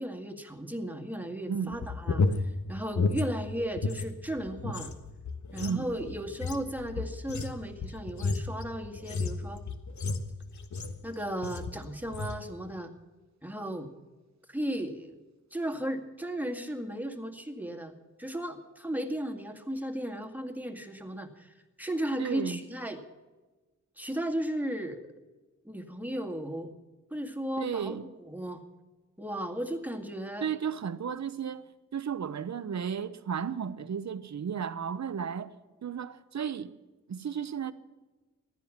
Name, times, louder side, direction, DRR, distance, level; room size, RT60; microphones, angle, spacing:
voice 1, 0.0-4.9 5.5-9.6 11.0-12.9 13.4-13.9 14.5-15.2 15.5-17.9 18.2-23.0 24.0-25.0 25.6-26.7 27.1-28.6 29.2-30.5, right 1 dB, 5° right, 2.0 m, -35 dB
sound 1, 1.7-4.1 4.4-11.1 11.4-11.8 12.1-12.4, left 3 dB, 65° left, 1.3 m, -32 dB
voice 2, 5.6-5.9 22.2-22.6 27.6-28.1 30.4-31.6 31.9-35.5 35.8-36.7 37.1-37.7, right 7 dB, 60° right, 1.0 m, -34 dB
15.0 x 11.0 x 7.4 m
cardioid pair, 75°, 32 cm